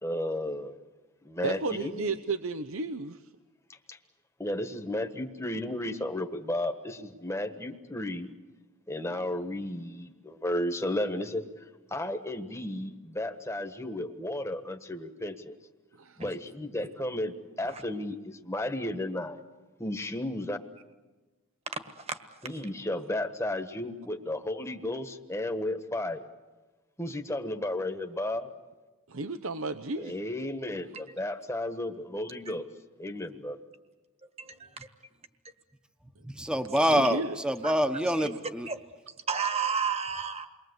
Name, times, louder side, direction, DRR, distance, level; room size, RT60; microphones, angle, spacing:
voice 1, 0.0-0.8 1.2-2.0 3.9-4.0 4.4-8.3 8.9-11.4 11.9-15.5 16.2-19.4 19.8-20.6 22.4-26.3 27.0-28.5 30.0-32.7 33.0-33.6, left 1 dB, 15° left, 7 dB, 1.3 m, -33 dB
voice 2, 1.4-3.2 15.9-16.2 29.1-30.2 36.9-37.4, right 3 dB, 70° right, 9 dB, 0.8 m, -33 dB
voice 3, 34.4-34.9 36.7-37.1 37.6-37.7 38.2-38.3 38.7-38.8 39.3-40.5, right 6 dB, 30° right, 8 dB, 1.5 m, -32 dB
voice 4, 36.2-38.7, equal, 5° right, 8 dB, 1.0 m, -26 dB
29.0 x 22.5 x 8.1 m, 1.2 s
head